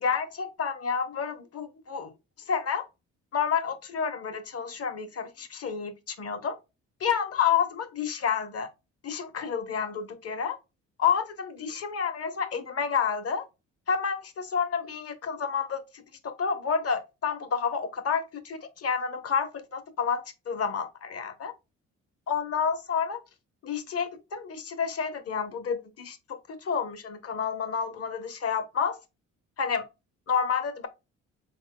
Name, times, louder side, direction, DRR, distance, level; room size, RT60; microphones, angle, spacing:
voice 1, 0.0-2.1 2.5-2.9 3.3-6.6 7.0-8.7 9.0-10.6 11.0-13.4 13.9-15.8 16.2-21.5 22.3-23.2 23.6-29.0 29.6-29.9 30.3-30.9, left 6 dB, 50° left, 1.0 m, -29 dB
4.1 x 3.6 x 2.2 m
cardioid pair, 90°, 30 cm